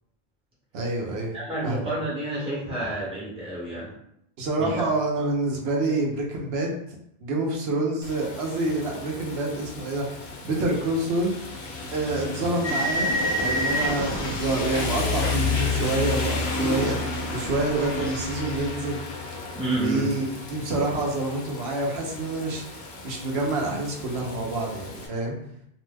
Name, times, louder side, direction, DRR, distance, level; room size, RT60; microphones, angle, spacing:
voice 1, 0.7-1.4 1.6-1.9 2.8-2.9 4.4-6.7 7.2-11.3 11.9-19.0 19.7-22.6 23.0-25.4, right 2 dB, 80° right, 0 dB, 0.9 m, -27 dB
voice 2, 1.3-3.9 4.6-4.8 19.5-20.1, right 1 dB, 5° right, -7 dB, 0.9 m, -29 dB
Rain, 8.0-25.1, left 4 dB, 85° left, 0.8 m, -33 dB
sound 1, 12.6-16.6 16.8-18.7, equal, 40° left, 0.4 m, -30 dB
2.6 x 2.1 x 3.3 m, 0.75 s
omnidirectional pair, 1.0 m